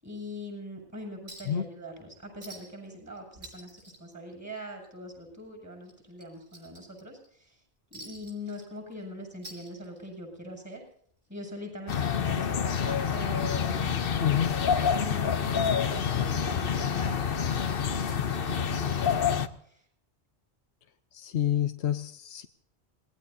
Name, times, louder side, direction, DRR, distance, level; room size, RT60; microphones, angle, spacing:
voice 1, 0.0-7.6 7.9-10.8 11.3-14.4 14.9-19.8, equal, 15° right, 2 dB, 7.1 m, -42 dB
Chink clink, 1.3-1.6 1.9-2.0 2.4-2.9 3.2-4.9 5.2-5.4 5.8-7.3 7.9-9.0 9.3-10.2 11.3-11.4, right 1 dB, 90° right, 5.0 m, -48 dB
sound 1, 11.9-19.5, left 7 dB, 60° left, 1.0 m, -27 dB
voice 2, 14.2-14.6 21.1-22.5, left 10 dB, 80° left, 8 dB, 1.1 m, -28 dB
27.0 x 19.5 x 2.7 m, 0.63 s
omnidirectional pair, 1.1 m